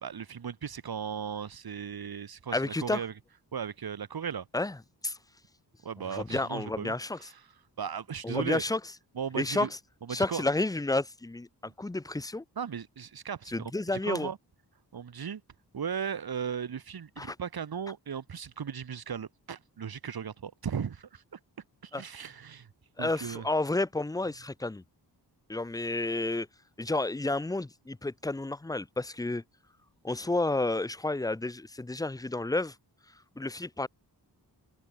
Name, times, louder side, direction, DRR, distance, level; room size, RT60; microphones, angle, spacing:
voice 1, 0.0-3.2 3.5-4.5 5.8-7.5 7.8-8.6 9.1-9.7 10.0-10.5 11.6-11.7 12.5-13.7 14.0-14.4 14.9-15.4 15.7-21.4 21.8-22.7 23.0-23.5, right 7 dB, 65° right, 3.2 m, -37 dB
voice 2, 2.5-3.0 4.5-4.7 5.0-5.2 6.1-7.2 8.2-8.8 9.4-9.7 10.1-11.5 11.8-12.4 13.5-14.3 17.2-17.3 21.9-22.0 23.0-24.8 25.5-26.5 26.8-29.4 30.0-32.7 33.4-33.9, left 2 dB, 10° left, 0.7 m, -30 dB
wide cardioid pair, 140°, 40 cm